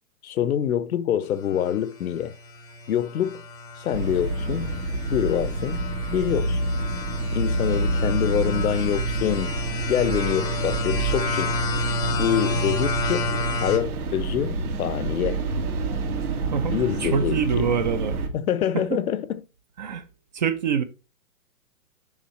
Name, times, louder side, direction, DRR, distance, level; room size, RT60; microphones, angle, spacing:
voice 1, 0.2-2.3 2.9-3.4 3.8-4.8 5.1-5.8 6.1-6.6 7.3-9.6 9.9-11.5 12.1-13.3 13.6-15.4 16.6-17.7 18.3-19.4, left 10 dB, 70° left, 0.7 m, -26 dB
sound 1, 1.4-13.8, left 2 dB, 10° left, 0.6 m, -31 dB
sound 2, 3.9-18.3, right 2 dB, 70° right, 1.8 m, -28 dB
voice 2, 16.5-18.2 18.7-18.8 19.8-20.0 20.3-20.8, right 7 dB, 30° right, 0.5 m, -25 dB
7.3 x 5.3 x 3.1 m
hypercardioid pair, 140°, 46 cm